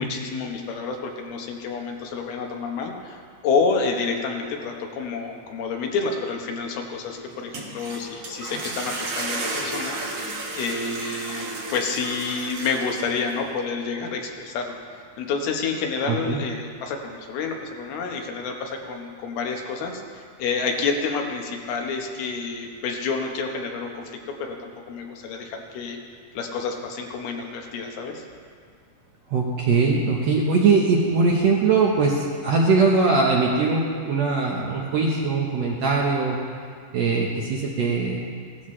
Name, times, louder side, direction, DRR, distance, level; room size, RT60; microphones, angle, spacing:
voice 1, 0.0-10.0 10.5-11.5 11.7-14.8 15.2-26.0 26.3-28.2, left 4 dB, 85° left, 2 dB, 3.1 m, -29 dB
sound 1, 7.3-13.4, right 2 dB, 50° right, 2.0 m, -33 dB
voice 2, 16.1-16.4 29.3-36.4 36.9-38.2, right 4 dB, 65° right, -3 dB, 1.7 m, -21 dB
17.0 x 13.5 x 3.2 m, 2.2 s
omnidirectional pair, 4.3 m